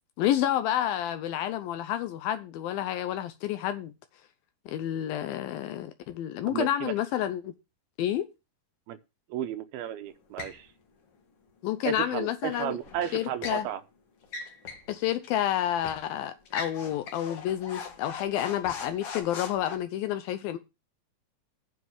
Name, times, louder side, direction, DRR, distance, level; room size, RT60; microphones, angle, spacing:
voice 1, 0.2-3.9 4.7-7.5 8.0-8.3 11.6-12.8 13.1-13.7 14.9-20.6, left 11 dB, 75° left, 2.4 m, -29 dB
voice 2, 6.5-6.9 8.9-9.0 9.3-10.7 11.8-13.8, right 11 dB, 85° right, 2.7 m, -33 dB
sound 1, 10.4-10.6 12.8-13.6 14.2-14.9 15.2-15.4 15.8-16.0 16.5-19.7, left 5 dB, 50° left, 2.1 m, -40 dB
9.5 x 5.9 x 7.2 m
omnidirectional pair, 4.5 m